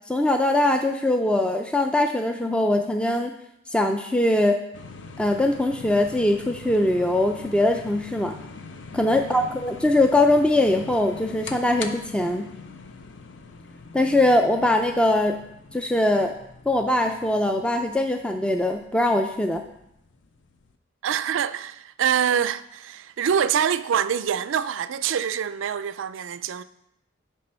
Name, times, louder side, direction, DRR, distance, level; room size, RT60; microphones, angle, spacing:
voice 1, 0.1-3.3 3.7-4.6 5.2-8.3 8.9-12.5 13.9-15.4 15.7-16.3 16.7-19.6, left 1 dB, 5° left, 0.3 m, -22 dB
sound 1, 4.7-20.7, left 4 dB, 65° left, 0.6 m, -42 dB
voice 2, 9.2-9.5 21.0-26.6, right 8 dB, 85° right, 0.4 m, -25 dB
9.9 x 3.7 x 5.5 m
head